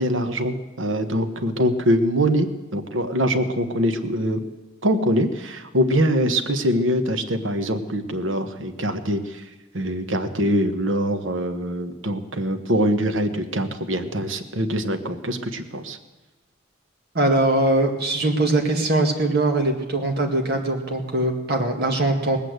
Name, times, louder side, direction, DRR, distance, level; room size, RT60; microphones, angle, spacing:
voice 1, 0.0-2.5 2.7-4.4 4.8-9.4 9.7-16.0, equal, 75° right, 8 dB, 1.2 m, -23 dB
voice 2, 17.1-22.4, right 2 dB, 55° right, 2 dB, 2.1 m, -21 dB
19.0 x 8.5 x 8.0 m, 1.1 s
head